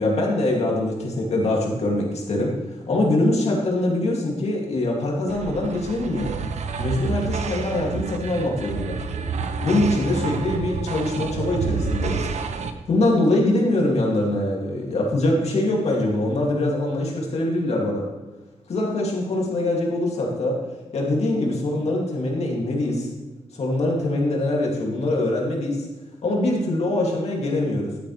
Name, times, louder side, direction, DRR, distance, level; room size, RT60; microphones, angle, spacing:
voice 1, 0.0-2.6 2.9-6.3 6.8-9.0 9.6-12.3 12.9-18.1 18.7-20.6 20.9-23.1 23.5-25.8 26.2-27.9, left 1 dB, 70° left, -1 dB, 2.2 m, -23 dB
sound 1, 5.3-12.7, right 5 dB, 80° right, 0.7 m, -29 dB
11.5 x 8.9 x 3.2 m, 1.2 s
wide cardioid pair, 120°, 11 cm